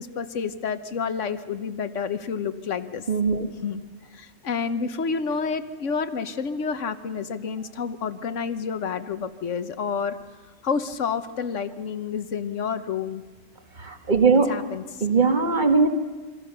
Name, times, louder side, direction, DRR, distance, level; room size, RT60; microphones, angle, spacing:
voice 1, 0.0-3.0 3.6-3.8 4.1-10.2 10.6-13.2 14.5-15.0, left 6 dB, 65° left, 12 dB, 1.4 m, -29 dB
voice 2, 3.1-3.5 13.8-14.5 15.0-15.9, right 4 dB, 35° right, 6 dB, 1.8 m, -20 dB
28.0 x 23.5 x 6.8 m, 1.3 s
omnidirectional pair, 1.4 m